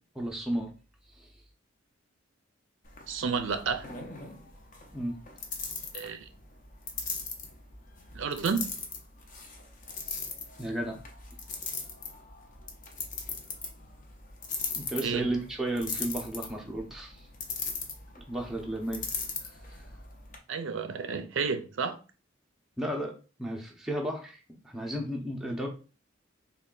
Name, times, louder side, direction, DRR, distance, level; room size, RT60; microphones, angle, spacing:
voice 1, 0.2-0.7 1.2-1.3 4.9-5.1 10.6-11.0 14.7-17.3 18.3-19.1 22.8-23.1 23.4-25.7, right 1 dB, ahead, 0.6 m, -33 dB
sound 1, 2.8-20.4, left 4 dB, 40° left, 0.7 m, -40 dB
voice 2, 3.1-3.9 5.9-6.2 8.1-8.7 15.0-15.3 20.5-22.0, right 5 dB, 75° right, 0.4 m, -31 dB
3.3 x 2.3 x 3.7 m
head